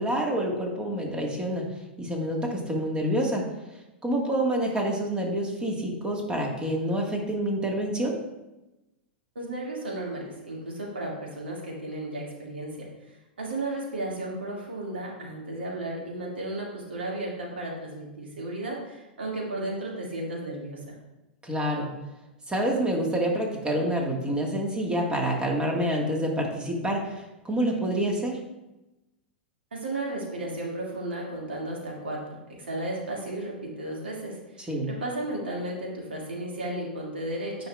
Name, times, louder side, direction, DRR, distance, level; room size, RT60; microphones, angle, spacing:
voice 1, 0.0-1.6 2.0-3.4 4.0-8.2 21.4-21.9 22.5-28.4 34.7-34.9, right 1 dB, 15° right, 0 dB, 1.6 m, -27 dB
voice 2, 9.4-12.9 13.4-20.9 29.7-32.2 32.6-37.7, right 1 dB, 85° right, -3 dB, 2.1 m, -34 dB
9.8 x 5.5 x 2.3 m, 1.0 s
hypercardioid pair, 105°, 6 cm